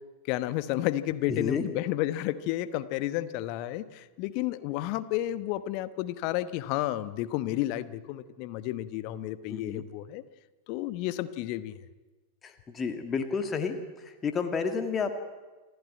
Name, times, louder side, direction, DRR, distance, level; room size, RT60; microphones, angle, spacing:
voice 1, 0.3-10.2 10.7-11.8, left 14 dB, 45° left, 13 dB, 1.0 m, -31 dB
voice 2, 1.3-1.6 9.5-9.8 12.4-15.2, left 5 dB, 20° left, 6 dB, 1.7 m, -31 dB
28.5 x 12.0 x 9.0 m, 1.2 s
figure-of-eight pair, 90°, 0 cm